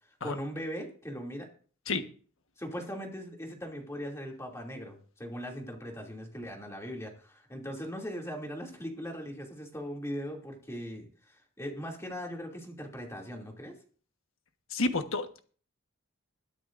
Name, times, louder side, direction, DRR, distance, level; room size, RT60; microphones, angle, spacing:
voice 1, 0.2-1.5 2.6-13.8, equal, 15° left, 0 dB, 2.6 m, -39 dB
voice 2, 14.7-15.4, left 3 dB, 75° left, 7 dB, 1.3 m, -30 dB
21.5 x 10.0 x 2.6 m, 0.43 s
head